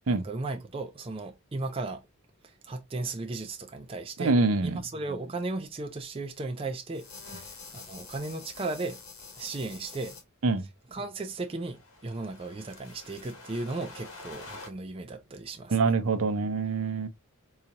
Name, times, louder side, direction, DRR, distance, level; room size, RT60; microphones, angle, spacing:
voice 1, 0.1-2.1 2.4-4.3 4.6-9.0 9.4-10.2 10.9-15.9, right 3 dB, 25° right, 0.4 m, -36 dB
voice 2, 4.2-4.8 10.4-10.7 15.7-17.1, right 3 dB, 75° right, 0.6 m, -25 dB
sound 1, 6.9-10.2 11.3-14.7, left 4 dB, 80° left, 1.4 m, -47 dB
3.9 x 2.4 x 2.8 m
head